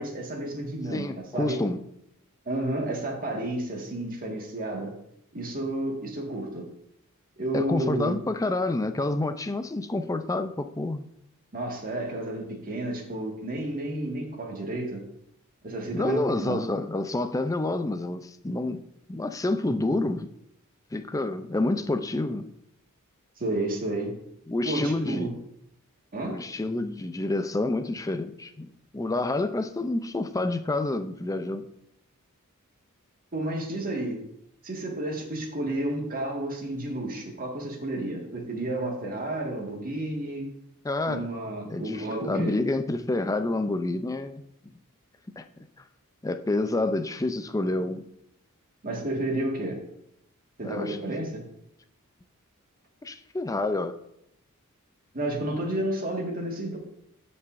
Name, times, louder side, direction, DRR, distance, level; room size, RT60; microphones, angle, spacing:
voice 1, 0.0-1.6 2.5-4.9 5.3-6.7 7.4-8.2 11.5-15.0 15.6-16.6 23.4-24.1 24.6-25.3 26.1-26.4 33.3-34.2 34.6-40.5 41.1-42.5 48.8-49.8 50.6-51.4 55.1-56.8, right 1 dB, 40° right, 0 dB, 1.8 m, -31 dB
voice 2, 0.9-1.8 7.5-11.0 15.9-18.8 19.1-20.3 20.9-22.5 24.5-25.4 26.2-31.7 40.8-41.3 41.7-44.4 45.4-45.5 46.2-48.0 50.6-51.0 53.0-54.0, left 2 dB, 15° left, 9 dB, 0.5 m, -28 dB
16.5 x 5.5 x 2.6 m, 0.76 s
head